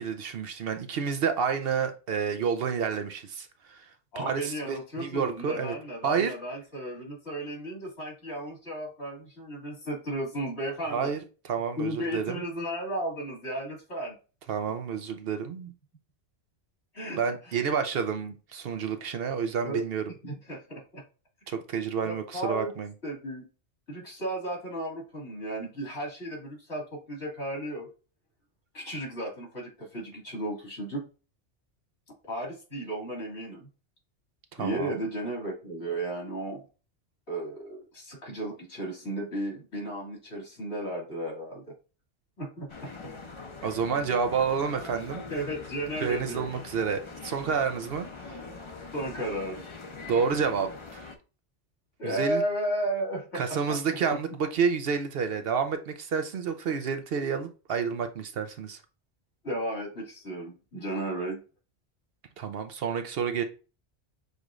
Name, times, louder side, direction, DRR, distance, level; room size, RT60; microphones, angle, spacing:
voice 1, 0.0-3.9 4.2-5.7 6.0-6.4 10.9-11.2 11.4-12.4 14.5-15.7 17.2-20.0 21.5-22.9 34.5-34.9 43.6-45.2 46.0-48.1 50.1-51.0 52.0-52.4 53.3-58.8 62.4-63.4, right 6 dB, 65° right, 0.8 m, -29 dB
voice 2, 4.1-11.1 11.8-14.1 16.9-17.2 17.5-17.6 19.6-19.8 20.2-21.0 22.0-22.7 23.0-23.5 23.9-27.9 28.7-31.1 32.3-33.7 34.6-36.6 37.3-41.7 42.4-42.9 45.3-46.5 48.9-49.6 52.0-53.8 59.4-61.4, right 1 dB, 75° left, 2.6 m, -34 dB
sound 1, 42.7-51.2, left 3 dB, 30° left, 0.6 m, -43 dB
6.6 x 3.0 x 2.5 m
omnidirectional pair, 1.2 m